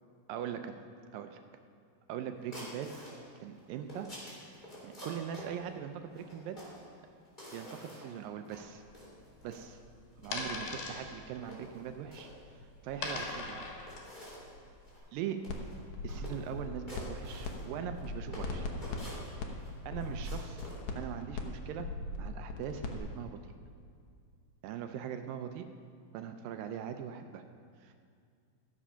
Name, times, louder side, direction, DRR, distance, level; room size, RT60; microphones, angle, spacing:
voice 1, 0.3-0.8 1.1-1.4 2.1-2.9 3.4-4.1 4.8-6.6 7.5-8.8 9.4-9.8 10.2-13.8 15.1-15.4 16.0-18.7 19.9-20.7 21.0-21.9 22.2-23.4 24.6-25.7 26.1-27.4 27.8-27.9, right 9 dB, 80° right, 7 dB, 2.2 m, -41 dB
sound 1, 2.5-3.1 3.6-5.5 6.1-6.8 7.2-8.2 8.4-8.6 8.9-9.6 10.1-10.3 10.6-11.0 11.4-12.3 12.9-13.5 13.9-14.5 14.8-15.0 15.3-15.8 16.1-16.5 16.9-18.1 18.3-19.7 20.0-20.8, equal, 10° left, 3.5 m, -48 dB
sound 2, 8.6-15.0, left 3 dB, 85° left, 3.6 m, -42 dB
sound 3, 15.5-15.6 15.9-17.5 17.8-23.0, left 3 dB, 65° left, 2.0 m, -39 dB
15.0 x 7.4 x 5.6 m, 2.2 s
omnidirectional pair, 4.2 m